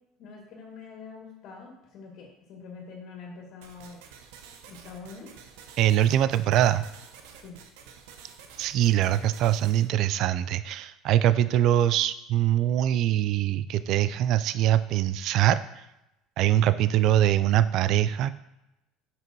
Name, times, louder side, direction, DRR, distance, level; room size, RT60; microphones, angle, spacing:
voice 1, 0.2-4.0 4.7-5.3 7.4-7.6, left 4 dB, 55° left, -1 dB, 2.3 m, -44 dB
sound 1, 3.6-9.9, right 6 dB, 90° right, 1.1 m, -50 dB
voice 2, 5.8-6.9 8.6-15.8 16.4-18.3, right 12 dB, 55° right, 14 dB, 0.4 m, -23 dB
7.7 x 6.1 x 4.6 m, 0.90 s
cardioid pair, 140°, 0 cm